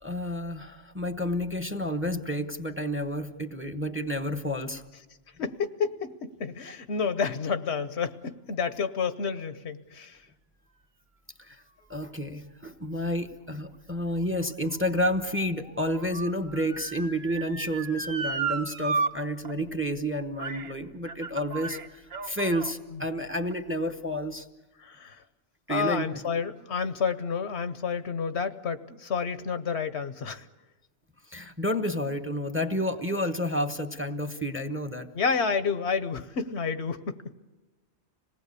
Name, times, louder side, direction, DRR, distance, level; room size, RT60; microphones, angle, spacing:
voice 1, 0.0-4.8 11.4-11.6 11.9-24.5 25.7-26.1 31.3-35.1, equal, 10° right, 9 dB, 1.0 m, -30 dB
voice 2, 5.4-10.2 24.8-25.2 25.7-30.4 35.1-37.3, left 5 dB, 70° left, 12 dB, 1.3 m, -30 dB
Motor vehicle (road) / Siren, 13.9-19.1 19.4-19.5 20.4-20.7 21.1-22.7 23.4-23.5, right 4 dB, 60° right, 1.7 m, -34 dB
26.5 x 19.0 x 8.3 m, 1.2 s
omnidirectional pair, 1.2 m